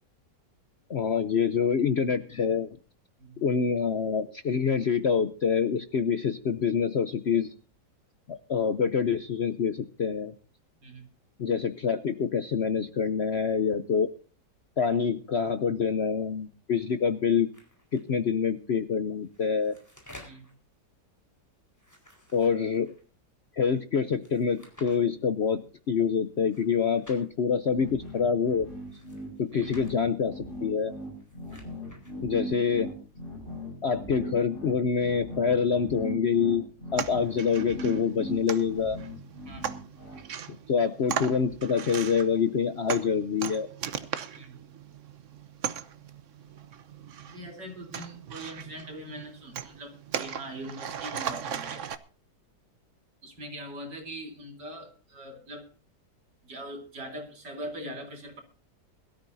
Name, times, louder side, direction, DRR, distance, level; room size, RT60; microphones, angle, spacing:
voice 1, 0.9-2.7 3.4-7.5 8.3-10.3 11.4-14.1 14.8-17.5 17.9-19.7 22.3-22.9 23.6-28.7 29.4-30.9 32.2-32.9 33.8-36.6 36.9-39.0 40.7-43.7, left 6 dB, 55° left, 11 dB, 0.7 m, -26 dB
sound 1, 17.5-18.0 19.2-20.5 21.7-23.0 24.2-25.0 26.4-27.3 28.8-29.9 31.1-32.1, left 1 dB, 10° left, 4.2 m, -53 dB
sound 2, 27.7-40.2, equal, 30° left, 5.8 m, -39 dB
sound 3, 37.0-52.0, right 8 dB, 50° right, 1.1 m, -38 dB
voice 2, 44.4-44.7 47.3-51.9 53.2-55.7 56.4-58.4, right 1 dB, 80° right, 3 dB, 4.2 m, -42 dB
22.0 x 13.0 x 2.7 m, 0.37 s
omnidirectional pair, 1.9 m